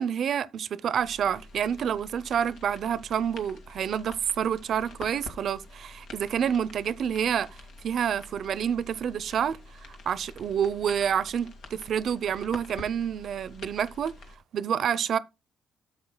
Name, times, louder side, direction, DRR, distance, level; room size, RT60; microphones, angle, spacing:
voice 1, 0.0-9.6 10.1-14.1 14.5-15.2, right 8 dB, 65° right, 0.6 m, -28 dB
sound 1, 1.0-14.4, left 3 dB, 75° left, 2.0 m, -47 dB
13.0 x 7.7 x 2.2 m
cardioid pair, 90°, 0 cm